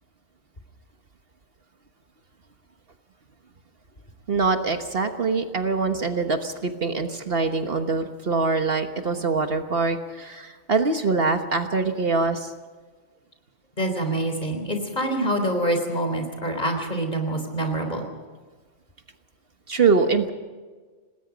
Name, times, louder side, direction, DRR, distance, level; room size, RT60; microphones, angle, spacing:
voice 1, 4.3-12.5 19.7-20.3, right 4 dB, 55° right, 6 dB, 1.5 m, -24 dB
voice 2, 13.8-18.1, right 1 dB, 40° left, 5 dB, 4.0 m, -26 dB
27.0 x 20.0 x 5.2 m, 1.4 s
omnidirectional pair, 1.2 m